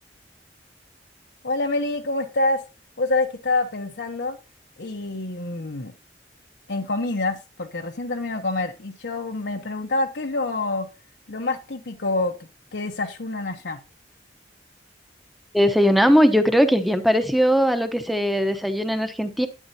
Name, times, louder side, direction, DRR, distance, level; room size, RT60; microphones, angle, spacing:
voice 1, 1.4-2.6 3.0-4.4 4.8-5.9 6.7-10.9 11.3-12.3 12.7-13.8, left 2 dB, 70° left, 1.0 m, -26 dB
voice 2, 15.5-19.5, equal, ahead, 0.9 m, -19 dB
11.0 x 9.4 x 2.8 m
head